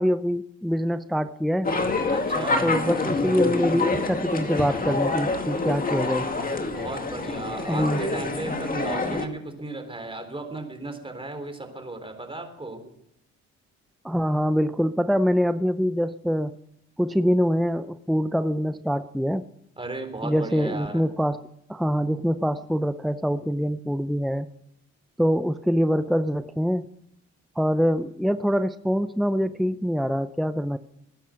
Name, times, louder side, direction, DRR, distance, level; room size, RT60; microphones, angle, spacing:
voice 1, 0.0-1.7 2.6-6.3 7.7-8.0 14.0-16.6 17.0-19.5 20.2-21.4 21.7-24.5 25.2-26.9 27.6-30.8, equal, ahead, 11 dB, 0.6 m, -24 dB
sound 1, 1.6-9.3, left 3 dB, 30° left, 2.2 m, -26 dB
voice 2, 2.1-2.7 6.8-12.9 19.8-21.0, right 2 dB, 20° right, 6 dB, 3.8 m, -35 dB
20.0 x 9.9 x 6.4 m, 0.77 s
cardioid pair, 90°, 30 cm